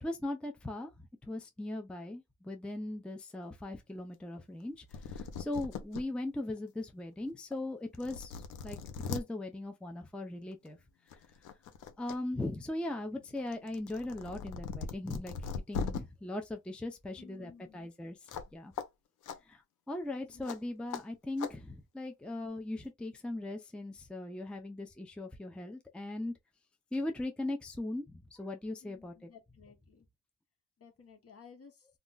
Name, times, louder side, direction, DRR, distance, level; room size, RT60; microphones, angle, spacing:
voice 1, 0.0-8.8 9.1-10.8 12.0-18.2 18.5-18.7 19.5-19.6 19.9-26.3 26.9-28.0 28.3-29.3, left 1 dB, 5° left, 0.5 m, -39 dB
sound 1, 4.6-4.7 4.9-6.0 6.6-6.7 7.5-7.6 7.9-9.2 10.5-10.7 11.1-12.2 12.5-16.0 18.3-18.5 18.8-18.9 19.2-19.4 20.5-20.6 20.9-21.0 21.4-21.5, left 6 dB, 85° left, 0.7 m, -40 dB
voice 2, 17.2-17.9 20.1-20.7 28.8-30.1 30.8-31.9, left 6 dB, 50° left, 1.1 m, -56 dB
2.4 x 2.0 x 3.8 m
cardioid pair, 90°, 30 cm